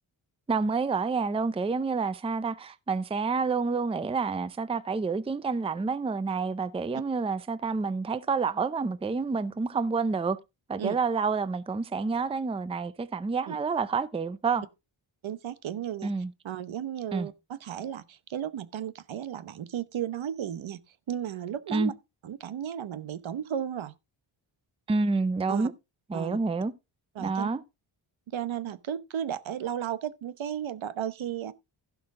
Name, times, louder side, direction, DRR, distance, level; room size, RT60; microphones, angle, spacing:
voice 1, 0.5-10.4 10.7-14.6 16.0-16.3 17.1-17.3 21.7-21.9 24.9-25.7 26.1-26.7 27.2-27.6, right 4 dB, 10° right, 0.5 m, -28 dB
voice 2, 15.2-16.1 16.4-20.8 21.1-21.9 22.2-23.9 25.5-25.7 26.1-26.4 27.1-27.5 28.3-31.5, right 9 dB, 70° right, 1.0 m, -34 dB
15.5 x 5.9 x 3.7 m
wide cardioid pair, 145°, 48 cm